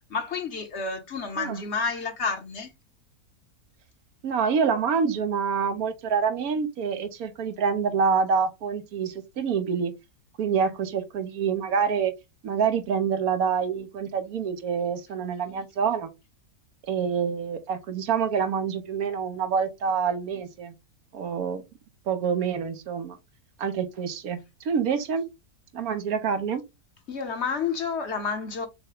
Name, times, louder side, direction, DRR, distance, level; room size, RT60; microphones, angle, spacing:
voice 1, 0.1-2.7 27.1-28.7, left 5 dB, 50° left, 1.2 m, -30 dB
voice 2, 4.2-9.9 10.4-12.1 12.4-16.1 16.9-20.7 21.1-21.6 22.1-23.2 23.6-24.4 24.6-25.3 25.7-26.6, right 6 dB, 75° right, 1.3 m, -26 dB
6.6 x 2.2 x 3.7 m
omnidirectional pair, 1.6 m